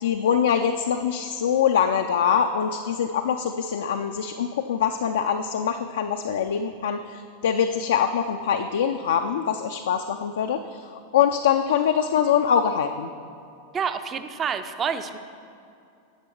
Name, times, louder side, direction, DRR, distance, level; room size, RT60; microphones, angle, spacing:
voice 1, 0.0-10.8 11.1-13.1, left 8 dB, 60° left, 6 dB, 0.4 m, -23 dB
voice 2, 13.7-15.2, right 6 dB, 25° right, 10 dB, 0.5 m, -28 dB
10.5 x 6.8 x 4.6 m, 2.6 s
figure-of-eight pair, 90°, 0 cm